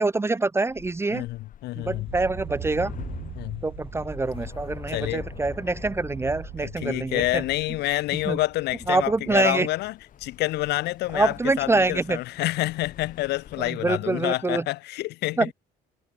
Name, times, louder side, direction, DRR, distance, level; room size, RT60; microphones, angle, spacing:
voice 1, 0.0-1.3 1.8-2.9 3.6-7.4 8.1-8.4 8.9-9.7 11.1-12.2 13.6-14.7 15.4-15.5, right 3 dB, 15° right, 0.7 m, -25 dB
sound 1, 0.7-13.7, left 10 dB, 50° left, 3.5 m, -48 dB
voice 2, 1.1-2.1 3.4-3.6 4.9-5.2 6.6-9.9 10.2-15.5, left 18 dB, 80° left, 1.5 m, -28 dB
sound 2, 1.8-6.8, left 6 dB, 35° left, 2.2 m, -41 dB
sound 3, 2.1-9.1, right 13 dB, 65° right, 2.0 m, -41 dB
cardioid pair, 110°, 17 cm